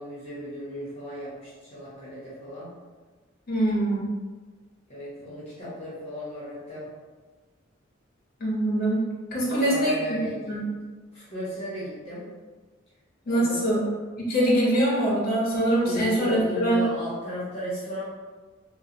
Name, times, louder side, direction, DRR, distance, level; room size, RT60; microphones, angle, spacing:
voice 1, 0.0-2.7 4.9-6.9 9.4-10.6 11.1-12.3 13.3-13.9 15.7-18.0, equal, 30° left, -10 dB, 1.1 m, -36 dB
voice 2, 3.5-4.0 8.4-9.0 9.3-10.2 10.5-10.6 13.3-13.8 14.2-16.8, right 1 dB, 50° left, -6 dB, 0.9 m, -23 dB
3.1 x 2.2 x 2.6 m, 1.4 s
head